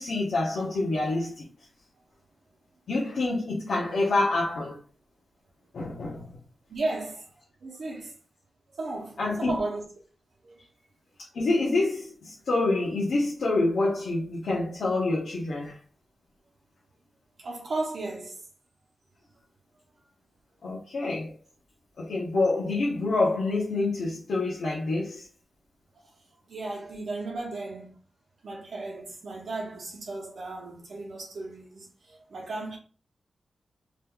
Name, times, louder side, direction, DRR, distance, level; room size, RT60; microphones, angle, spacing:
voice 1, 0.0-1.5 2.9-4.8 5.7-6.4 9.2-9.5 11.3-15.8 20.6-21.3 22.0-25.3, left 2 dB, 80° left, 0.8 m, -27 dB
voice 2, 6.7-7.3 7.6-8.1 8.7-9.8 10.4-10.6 17.4-18.4 26.0-26.1 26.5-28.0 28.4-32.8, right 2 dB, 65° right, 0.8 m, -35 dB
3.4 x 3.0 x 2.3 m
wide cardioid pair, 150°, 0 cm